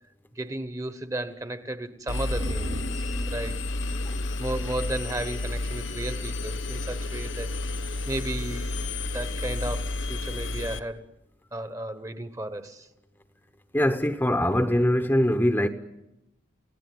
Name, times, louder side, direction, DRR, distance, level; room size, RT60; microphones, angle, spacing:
voice 1, 0.4-3.6 4.4-7.5 8.1-8.7 9.1-11.1 11.5-12.9, right 1 dB, 15° right, 1.1 m, -34 dB
Engine, 2.1-10.8, left 2 dB, 80° left, 1.2 m, -31 dB
sound 1, 2.3-5.7 6.0-6.1, right 1 dB, 45° right, 0.9 m, -40 dB
voice 2, 13.7-15.7, equal, 10° left, 0.9 m, -22 dB
29.0 x 17.0 x 9.5 m
head